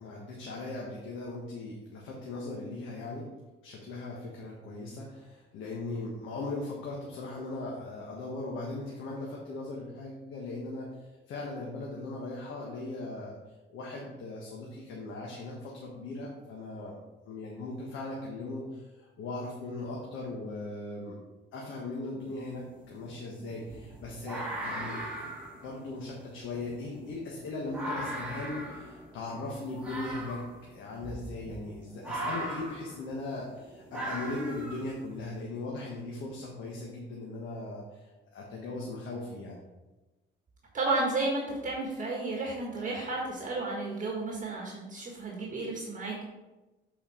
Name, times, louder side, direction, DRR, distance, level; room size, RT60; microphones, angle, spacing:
voice 1, 0.0-3.3 3.6-13.4 13.7-17.0 17.3-21.2 21.5-39.6, left 2 dB, 85° left, -2 dB, 1.3 m, -39 dB
sound 1, 22.2-22.3 22.7-35.3, right 1 dB, 5° right, 2.5 m, -39 dB
voice 2, 40.7-46.2, right 2 dB, 40° right, -2 dB, 1.7 m, -32 dB
7.7 x 4.6 x 4.4 m, 1.1 s
cardioid pair, 90°, 20 cm